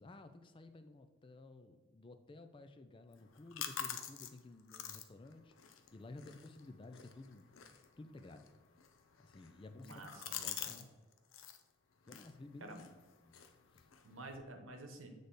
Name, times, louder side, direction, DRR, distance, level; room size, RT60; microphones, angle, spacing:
voice 1, 0.0-8.6 9.2-10.1 10.3-10.9 12.1-12.8 13.2-13.4 13.7-13.9, left 2 dB, 25° left, 8 dB, 0.3 m, -54 dB
sound 1, 3.1-10.9 11.1-11.6 12.0-14.4, left 9 dB, 80° left, 0.5 m, -48 dB
voice 2, 9.7-10.8 12.6-12.8 14.0-15.1, right 2 dB, 80° right, 5 dB, 1.0 m, -51 dB
8.0 x 3.3 x 4.0 m, 1.3 s
head